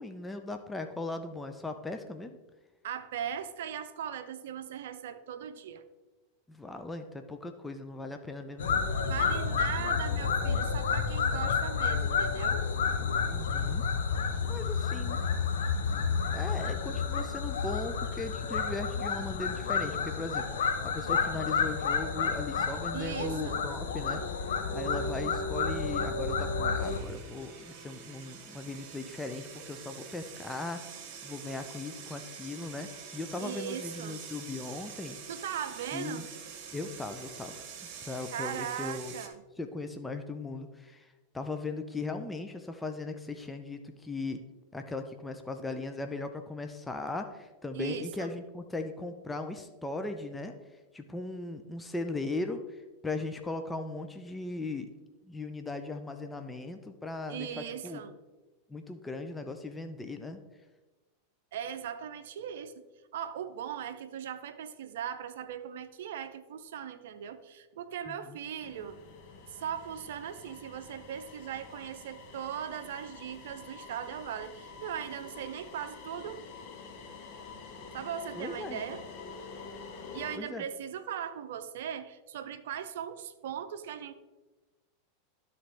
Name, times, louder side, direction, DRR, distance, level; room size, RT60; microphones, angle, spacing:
voice 1, 0.0-2.4 6.5-8.8 13.2-13.8 14.4-15.2 16.3-30.8 31.2-35.2 35.9-36.3 36.7-39.1 39.6-44.4 44.7-54.9 55.2-58.0 58.7-60.4 68.1-68.4 78.4-78.8 80.4-80.6, left 3 dB, 10° left, 6 dB, 0.6 m, -38 dB
voice 2, 2.8-5.8 9.1-12.6 22.9-23.6 33.4-34.2 35.3-36.3 38.3-39.4 47.7-48.3 57.3-58.2 61.5-62.7 63.1-69.0 69.5-76.4 77.9-79.0 80.1-84.1, right 9 dB, 65° right, 11 dB, 0.6 m, -39 dB
sound 1, 8.6-27.0, left 5 dB, 70° left, 1.1 m, -30 dB
sound 2, 26.8-39.3, right 7 dB, 50° right, 1.2 m, -46 dB
sound 3, 68.6-80.4, left 4 dB, 50° left, 1.2 m, -47 dB
12.5 x 4.2 x 3.4 m, 1.2 s
hypercardioid pair, 90°, 0 cm